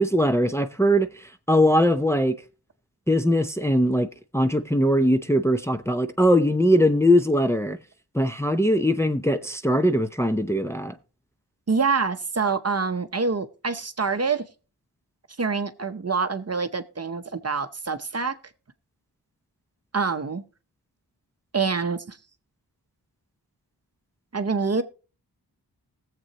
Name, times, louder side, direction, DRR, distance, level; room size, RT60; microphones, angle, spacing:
voice 1, 0.0-2.4 3.1-4.1 4.3-7.8 8.1-10.9, equal, 5° left, 0.7 m, -21 dB
voice 2, 11.7-14.4 15.4-18.3 19.9-20.4 21.5-22.2 24.3-24.8, right 4 dB, 40° right, 0.8 m, -26 dB
19.0 x 7.6 x 2.9 m
wide cardioid pair, 70°, 40 cm